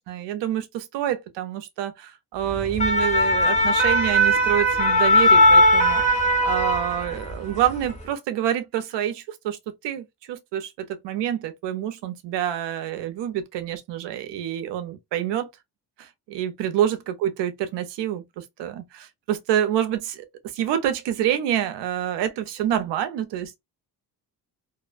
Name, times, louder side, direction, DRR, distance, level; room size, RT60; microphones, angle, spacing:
voice 1, 0.0-15.5 16.0-20.3 20.5-23.6, right 11 dB, 80° right, 0.6 m, -27 dB
sound 1, 2.5-7.3 7.7-7.9, left 1 dB, 15° left, 1.0 m, -19 dB
2.4 x 2.1 x 2.4 m
cardioid pair, 75°, 42 cm